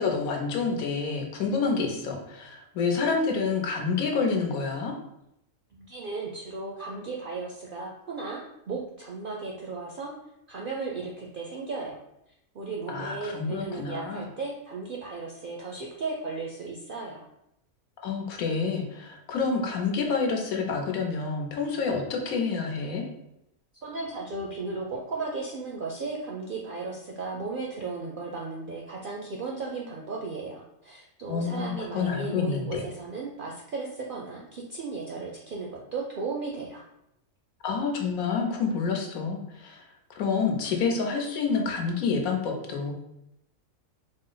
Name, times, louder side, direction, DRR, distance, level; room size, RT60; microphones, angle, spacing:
voice 1, 0.0-4.9 12.9-14.3 18.0-23.0 31.3-32.8 37.6-39.8 40.1-42.9, left 5 dB, 85° left, 2 dB, 1.2 m, -28 dB
voice 2, 5.7-10.1 10.5-12.0 12.5-17.2 23.8-36.8, right 3 dB, 70° right, -2 dB, 0.5 m, -35 dB
4.1 x 2.0 x 3.8 m, 0.83 s
omnidirectional pair, 1.5 m